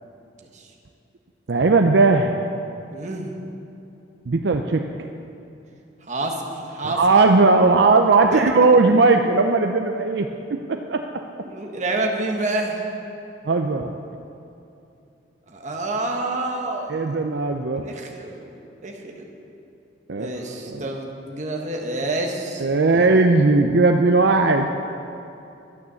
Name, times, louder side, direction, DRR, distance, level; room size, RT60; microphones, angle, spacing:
voice 1, 1.5-2.4 4.3-5.1 6.8-10.3 10.7-11.0 13.5-13.9 16.9-17.9 20.1-20.3 20.7-20.9 22.6-24.7, right 3 dB, 70° right, 5 dB, 0.6 m, -18 dB
voice 2, 2.9-3.3 6.1-7.0 8.3-8.4 11.4-12.9 15.5-17.2 17.8-19.3 20.1-23.0, right 2 dB, 40° right, 1 dB, 1.4 m, -28 dB
12.0 x 9.5 x 6.9 m, 2.8 s
head